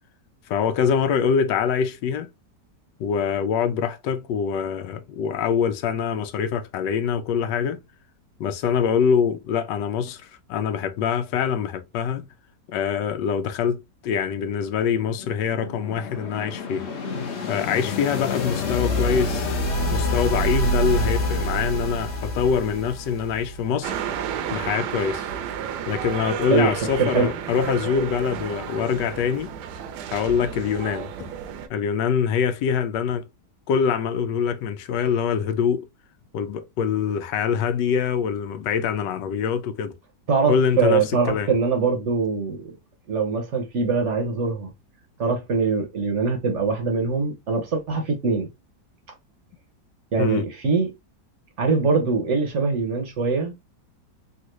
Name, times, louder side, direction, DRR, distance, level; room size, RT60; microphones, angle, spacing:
voice 1, 0.5-2.3 3.0-7.8 8.4-12.3 12.7-16.9 17.4-19.5 19.9-24.0 24.5-25.3 25.9-29.5 30.1-31.3 31.7-33.3 33.7-35.9 36.3-40.0 40.5-41.5 50.2-50.4, left 7 dB, 85° left, 1.2 m, -24 dB
sound 1, 15.0-23.8, left 1 dB, 50° left, 0.8 m, -27 dB
sound 2, 23.8-31.7, right 9 dB, 75° right, 1.1 m, -32 dB
voice 2, 27.0-27.3 40.3-42.7 43.1-44.7 45.2-48.5 50.1-50.9 51.6-53.5, right 4 dB, 55° right, 0.9 m, -23 dB
3.5 x 2.4 x 3.0 m
omnidirectional pair, 1.9 m